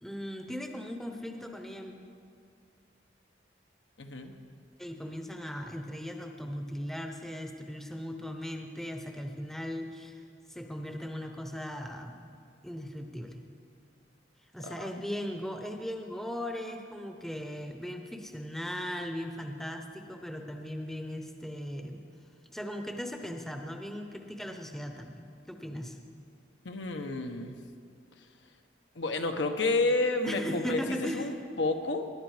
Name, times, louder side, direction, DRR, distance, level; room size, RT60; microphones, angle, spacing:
voice 1, 0.0-1.9 4.8-12.3 12.6-13.4 14.5-22.0 22.5-26.0 30.2-31.4, equal, ahead, 4 dB, 0.8 m, -38 dB
voice 2, 4.0-4.3 14.6-14.7 26.6-27.6 28.9-31.3 31.6-32.1, left 2 dB, 80° left, 5 dB, 1.1 m, -30 dB
20.0 x 10.5 x 5.0 m, 2.3 s
head